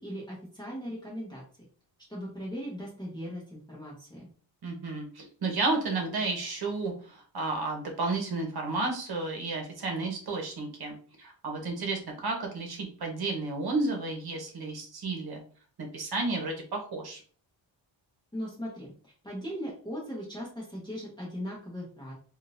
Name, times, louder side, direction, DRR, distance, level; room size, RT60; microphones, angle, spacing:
voice 1, 0.0-1.4 2.1-4.2 18.3-22.1, equal, 10° left, -7 dB, 1.0 m, -38 dB
voice 2, 4.6-15.4 15.8-17.2, right 3 dB, 50° right, 2 dB, 1.0 m, -32 dB
3.7 x 2.5 x 2.5 m, 0.43 s
wide cardioid pair, 165°, 47 cm